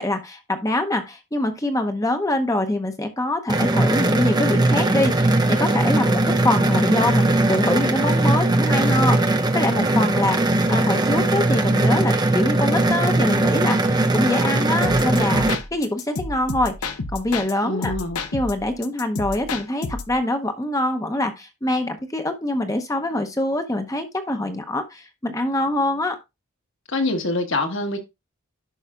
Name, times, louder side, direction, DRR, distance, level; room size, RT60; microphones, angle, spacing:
voice 1, 0.0-10.4 10.7-15.4 15.7-17.9 18.3-26.2, left 1 dB, 15° left, 0.7 m, -24 dB
sound 1, 3.5-15.6, right 2 dB, 20° right, 0.6 m, -19 dB
sound 2, 14.8-17.5 17.8-20.2, left 3 dB, 85° left, 0.9 m, -30 dB
voice 2, 17.6-18.2 26.9-28.0, left 2 dB, 60° left, 1.5 m, -25 dB
11.0 x 5.6 x 2.4 m
head